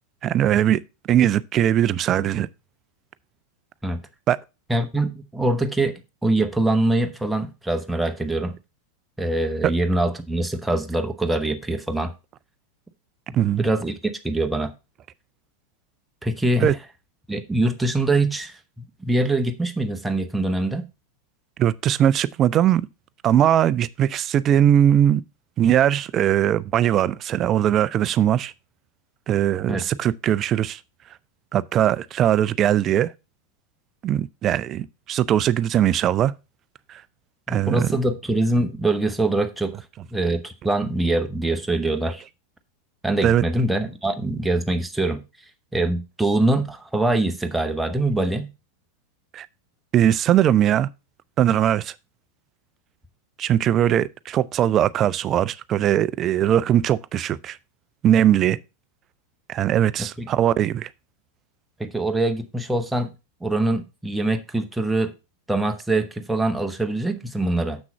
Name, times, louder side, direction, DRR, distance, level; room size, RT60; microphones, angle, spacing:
voice 1, 0.2-0.8 1.1-2.5 4.3-4.4 13.3-13.6 16.6-16.7 21.6-22.9 23.2-25.2 25.6-28.5 29.3-30.8 31.5-33.1 34.0-36.3 36.9-37.0 37.5-37.9 43.2-43.4 49.3-49.5 49.9-50.9 51.4-51.9 53.4-57.6 58.0-58.6 59.5-60.9, right 11 dB, 30° right, 0.4 m, -20 dB
voice 2, 4.7-8.6 9.2-12.1 13.6-14.7 16.2-16.8 17.3-20.8 29.7-29.8 37.5-39.8 40.1-42.2 43.0-45.2 45.7-48.5 60.0-60.3 61.8-63.1 63.4-65.1 65.5-67.8, right 2 dB, 5° right, 1.0 m, -23 dB
7.1 x 6.1 x 4.3 m
figure-of-eight pair, 90°, 0 cm